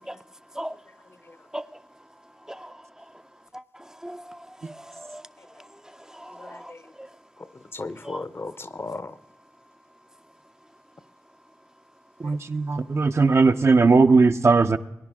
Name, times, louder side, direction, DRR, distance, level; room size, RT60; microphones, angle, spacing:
voice 1, 2.5-3.0 3.5-5.3 5.6-7.1 8.0-8.2, equal, 10° right, 0.5 m, -40 dB
voice 2, 6.4-6.9 7.4-9.2 12.2-12.4, left 3 dB, 45° left, 0.7 m, -37 dB
voice 3, 12.2-14.8, right 4 dB, 50° right, 0.7 m, -18 dB
19.0 x 10.5 x 3.6 m
cardioid pair, 40°, 6 cm